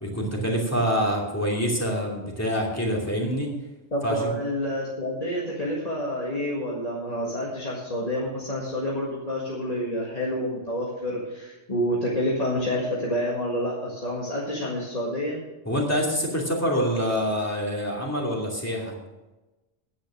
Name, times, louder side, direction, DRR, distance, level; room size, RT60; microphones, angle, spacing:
voice 1, 0.0-3.5 4.0-4.3 15.7-18.9, equal, 10° left, -2 dB, 2.6 m, -26 dB
voice 2, 3.9-15.4, equal, 30° left, -5 dB, 1.9 m, -28 dB
10.5 x 9.2 x 6.3 m, 1.1 s
omnidirectional pair, 1.3 m